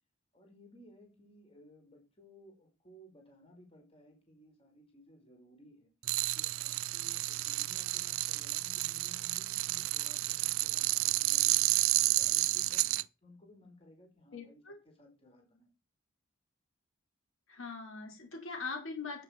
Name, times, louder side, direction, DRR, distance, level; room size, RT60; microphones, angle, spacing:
voice 1, 0.3-5.9 6.3-12.8 13.2-15.7, equal, 30° left, 2 dB, 5.0 m, -58 dB
sound 1, 6.0-13.0, right 17 dB, 85° right, 0.5 m, -31 dB
voice 2, 14.3-14.8 17.5-19.2, left 4 dB, 75° left, 2 dB, 5.2 m, -41 dB
11.0 x 9.7 x 4.5 m, 0.30 s
head